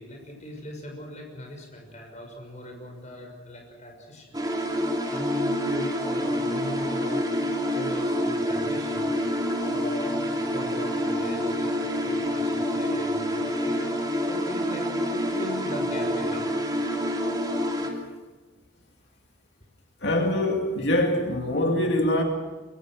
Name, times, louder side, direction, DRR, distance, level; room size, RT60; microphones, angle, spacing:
voice 1, 0.0-4.4 5.1-7.3 7.7-9.1 9.7-13.8 14.2-16.5 16.8-16.9, left 1 dB, 35° left, 6.2 m, -39 dB
sound 1, 4.3-17.9, equal, 20° right, 3.1 m, -27 dB
voice 2, 20.0-22.2, left 1 dB, 60° left, 2.5 m, -24 dB
24.5 x 24.0 x 6.4 m
head